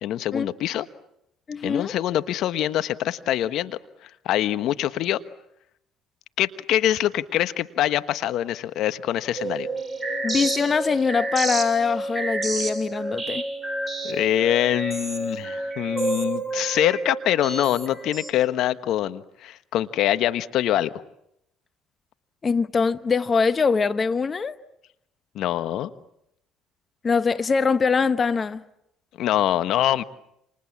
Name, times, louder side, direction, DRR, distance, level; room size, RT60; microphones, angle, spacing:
voice 1, 0.0-0.9 1.6-5.2 6.4-9.7 14.0-20.9 25.3-25.9 29.2-30.0, left 12 dB, 70° left, 1.3 m, -24 dB
voice 2, 1.5-1.9 10.2-13.4 22.4-24.6 27.0-28.6, left 5 dB, 35° left, 1.1 m, -23 dB
sound 1, 9.4-18.3, right 2 dB, 15° right, 6.9 m, -29 dB
29.0 x 28.0 x 7.3 m
supercardioid pair, 70°, 0 cm